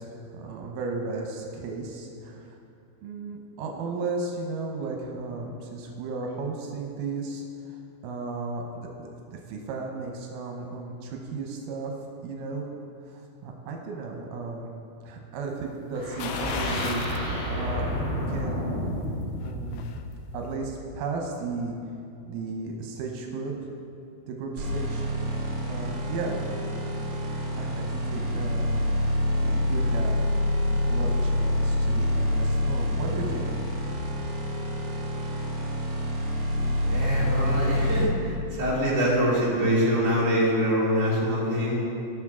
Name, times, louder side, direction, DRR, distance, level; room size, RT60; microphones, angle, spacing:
voice 1, 0.0-2.5 3.0-7.8 8.0-8.9 9.3-11.9 12.2-12.7 13.1-14.7 15.0-17.0 17.5-19.1 19.4-19.9 20.3-21.8 22.2-23.5 24.3-26.5 27.4-28.9 29.4-30.1 30.8-33.7, right 3 dB, 85° right, 1 dB, 2.5 m, -35 dB
sound 1, 15.9-20.8, equal, 25° left, 1.5 m, -31 dB
sound 2, 16.2-17.3 17.7-17.8 19.3-20.1 20.4-20.5, left 7 dB, 90° left, 1.6 m, -35 dB
sound 3, 24.6-38.1, left 1 dB, 60° right, 2.8 m, -27 dB
voice 2, 36.9-41.8, equal, 30° right, -8 dB, 3.2 m, -24 dB
18.0 x 6.1 x 3.6 m, 2.6 s
omnidirectional pair, 3.8 m